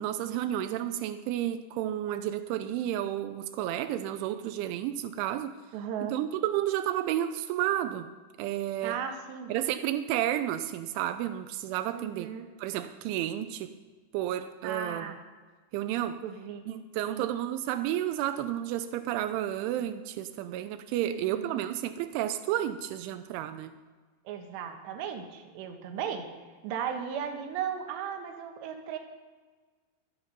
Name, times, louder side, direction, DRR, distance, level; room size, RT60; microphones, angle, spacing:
voice 1, 0.0-5.5 6.1-8.1 8.4-9.0 9.5-12.3 12.6-13.7 14.1-15.1 15.7-16.2 16.7-23.7, right 12 dB, 90° right, 9 dB, 3.2 m, -31 dB
voice 2, 5.7-6.2 8.8-9.5 11.9-12.5 14.6-15.2 16.2-16.6 17.1-17.3 20.9-21.6 24.3-26.3 26.6-29.0, right 8 dB, 70° right, 5 dB, 3.4 m, -36 dB
23.0 x 8.1 x 5.3 m, 1.4 s
omnidirectional pair, 5.4 m